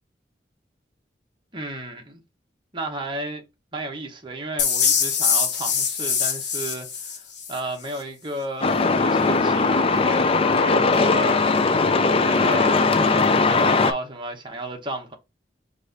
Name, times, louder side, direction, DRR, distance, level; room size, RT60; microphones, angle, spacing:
voice 1, 1.5-2.2 2.7-3.4 3.7-11.9 12.2-15.2, right 1 dB, 25° right, 1.0 m, -33 dB
sound 1, 4.6-7.6, left 6 dB, 70° left, 1.2 m, -23 dB
Truck, 8.6-13.9, left 3 dB, 30° left, 0.4 m, -19 dB
4.7 x 2.6 x 4.0 m
head